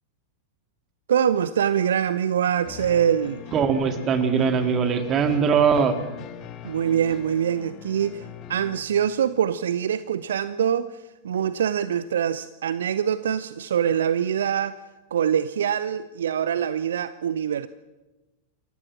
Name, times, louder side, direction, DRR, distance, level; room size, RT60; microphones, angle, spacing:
voice 1, 1.1-3.4 6.6-14.8 15.1-17.7, right 9 dB, 65° right, 16 dB, 0.6 m, -24 dB
sound 1, 2.6-8.8, left 8 dB, 35° left, 1.7 m, -41 dB
voice 2, 3.5-6.0, right 6 dB, 30° right, 9 dB, 2.2 m, -21 dB
28.0 x 15.5 x 6.1 m, 1.1 s
figure-of-eight pair, 90°, 0 cm